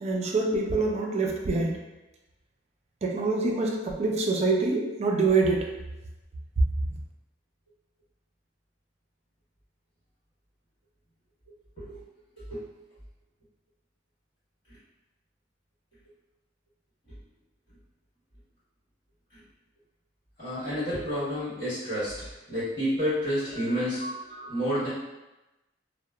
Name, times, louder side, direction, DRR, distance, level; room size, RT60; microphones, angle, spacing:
voice 1, 0.0-1.8 3.0-5.7, right 3 dB, 35° right, 0 dB, 0.3 m, -25 dB
voice 2, 20.4-24.9, equal, 40° left, -15 dB, 1.5 m, -30 dB
2.8 x 2.0 x 2.3 m, 1.0 s
head